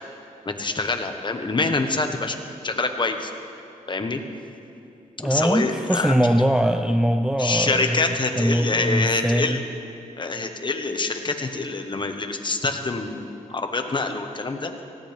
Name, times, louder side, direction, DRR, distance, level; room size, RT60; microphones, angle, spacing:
voice 1, 0.4-2.4 2.6-3.3 3.9-4.2 5.2-6.1 7.4-9.6 10.2-14.7, left 3 dB, 35° left, 5 dB, 1.3 m, -26 dB
voice 2, 5.2-9.6, equal, 5° right, 6 dB, 0.5 m, -22 dB
18.5 x 16.5 x 3.5 m, 2.6 s
cardioid pair, 75°, 14 cm